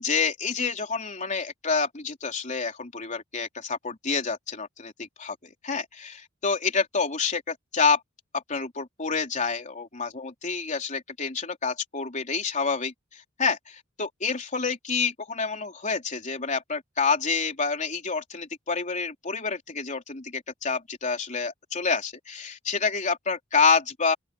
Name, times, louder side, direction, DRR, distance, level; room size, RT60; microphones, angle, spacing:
voice 1, 0.0-8.0 8.3-24.1, left 5 dB, 40° left, 3.7 m, -28 dB
open air
head